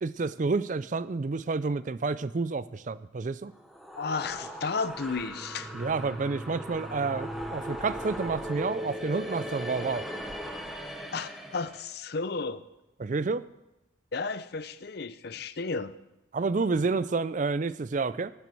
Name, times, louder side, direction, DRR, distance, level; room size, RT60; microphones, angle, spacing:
voice 1, 0.0-3.5 5.7-10.1 13.0-13.4 16.3-18.3, right 4 dB, 40° right, 16 dB, 0.4 m, -29 dB
sound 1, 3.5-11.8, equal, ahead, 1.0 m, -38 dB
voice 2, 3.9-5.7 11.1-12.6 14.1-15.9 16.7-16.8, left 4 dB, 55° left, 14 dB, 0.6 m, -33 dB
12.0 x 8.2 x 7.7 m, 0.96 s
head